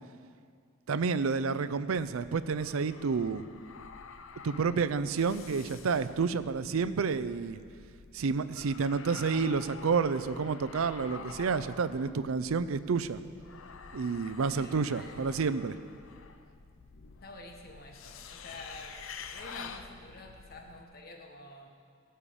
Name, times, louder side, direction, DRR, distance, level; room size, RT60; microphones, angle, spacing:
voice 1, 0.9-3.4 4.4-7.6 8.1-13.2 13.9-15.8, right 5 dB, 90° right, 14 dB, 0.5 m, -30 dB
sound 1, 2.0-20.8, left 5 dB, 75° left, 0.6 m, -48 dB
voice 2, 14.5-15.2 17.2-19.0 19.3-21.7, left 2 dB, 50° left, 2 dB, 1.3 m, -48 dB
17.0 x 5.7 x 6.9 m, 2.2 s
head